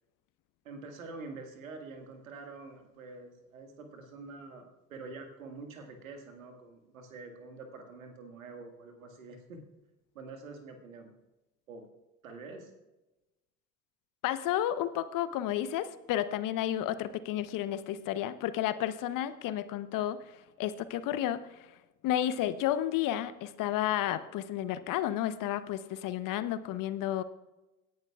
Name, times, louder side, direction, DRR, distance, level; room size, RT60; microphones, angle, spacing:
voice 1, 0.6-9.6 10.2-11.1 11.7-11.9 12.2-12.7, right 3 dB, 80° right, 4 dB, 1.9 m, -46 dB
voice 2, 14.2-21.7 22.0-27.2, left 12 dB, 50° left, 13 dB, 0.9 m, -32 dB
26.0 x 10.5 x 2.4 m, 1.0 s
hypercardioid pair, 60°, 40 cm